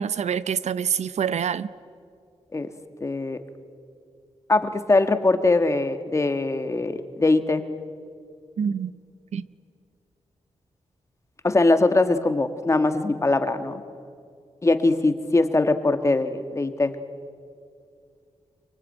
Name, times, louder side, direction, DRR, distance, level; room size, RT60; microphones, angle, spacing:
voice 1, 0.0-1.7 8.6-8.9 9.3-9.4, right 7 dB, 85° right, 16 dB, 0.6 m, -26 dB
voice 2, 3.0-3.4 4.5-7.6 11.4-13.8 14.6-16.9, left 2 dB, 25° left, 9 dB, 1.4 m, -21 dB
24.0 x 24.0 x 9.0 m, 2.3 s
wide cardioid pair, 135°, 11 cm